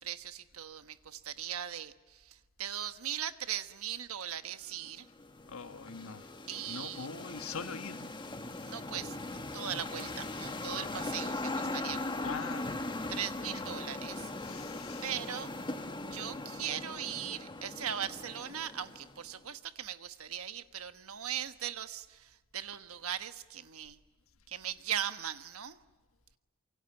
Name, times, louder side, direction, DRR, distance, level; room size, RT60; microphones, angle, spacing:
voice 1, 0.0-5.1 6.5-7.1 8.6-12.3 13.1-14.7 15.0-15.5 16.1-24.0 24.5-25.8, right 9 dB, 75° right, 1.2 m, -39 dB
sound 1, 4.8-19.3, left 2 dB, 20° left, 1.5 m, -40 dB
voice 2, 5.5-6.3 6.7-8.1 12.2-12.7 13.1-13.7 14.4-15.1, left 5 dB, 70° left, 1.4 m, -43 dB
27.5 x 24.0 x 8.9 m
head